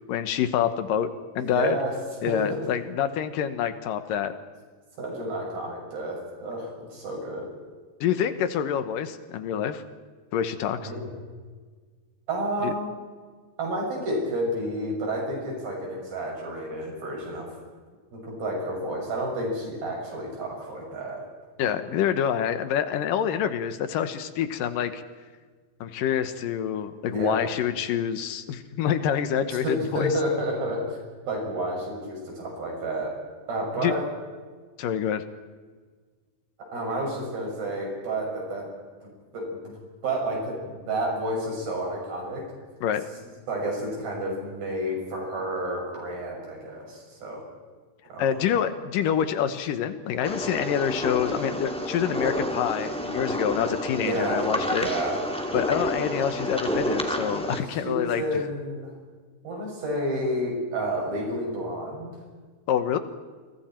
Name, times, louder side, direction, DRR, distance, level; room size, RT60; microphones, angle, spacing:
voice 1, 0.1-1.1 1.4-1.8 2.2-4.3 8.0-9.8 10.3-10.9 12.6-12.7 21.6-25.0 25.8-30.1 33.8-33.9 34.8-35.2 42.8-43.0 48.2-54.9 55.5-58.2 62.7-63.0, left 9 dB, 70° left, 10 dB, 2.4 m, -26 dB
voice 2, 1.4-1.9 2.3-2.6 5.0-7.5 10.8-11.1 12.3-12.9 13.6-17.5 18.1-21.2 27.1-27.5 29.6-31.0 31.3-33.1 33.5-34.0 36.7-38.7 39.0-39.7 40.0-42.5 43.5-47.4 48.1-48.3 54.0-55.2 57.8-58.9 59.4-62.1, right 1 dB, 65° right, -1 dB, 8.3 m, -30 dB
sound 1, 50.2-57.6, equal, 5° left, 1.0 m, -29 dB
29.0 x 24.0 x 4.5 m, 1.5 s
omnidirectional pair, 4.6 m